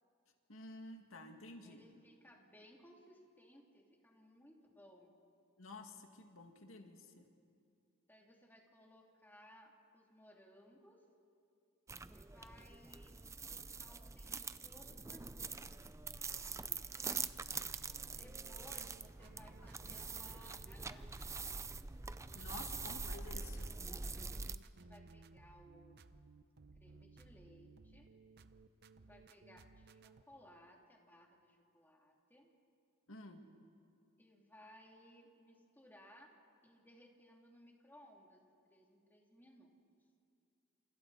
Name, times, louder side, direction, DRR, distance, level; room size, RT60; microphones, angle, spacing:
voice 1, 0.5-1.8 5.6-7.2 22.3-23.7 33.1-33.4, left 2 dB, 80° left, 4 dB, 2.1 m, -52 dB
voice 2, 1.6-5.2 8.1-11.0 12.1-13.1 13.4-15.7 18.2-21.1 24.6-26.1 26.8-28.1 29.1-32.5 34.2-36.3 36.6-38.4 38.7-39.7, equal, 10° left, -1 dB, 2.9 m, -62 dB
sound 1, 11.9-24.6, right 4 dB, 15° right, 0.5 m, -44 dB
sound 2, 17.4-30.2, right 3 dB, 55° right, 0.7 m, -61 dB
29.0 x 28.0 x 4.2 m, 2.4 s
head